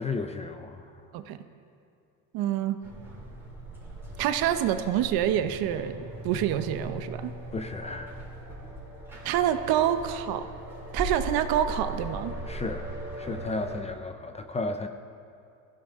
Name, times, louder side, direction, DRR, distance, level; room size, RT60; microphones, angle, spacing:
voice 1, 0.0-1.0 7.5-8.1 12.5-14.9, left 3 dB, 15° left, 7 dB, 0.5 m, -34 dB
voice 2, 2.3-2.8 4.2-6.0 6.2-7.3 9.2-10.5 10.9-12.3, right 10 dB, 60° right, 9 dB, 1.0 m, -26 dB
sound 1, 2.8-13.8, right 2 dB, 5° right, 4.3 m, -39 dB
21.5 x 15.0 x 3.7 m, 2.6 s
cardioid pair, 140°, 41 cm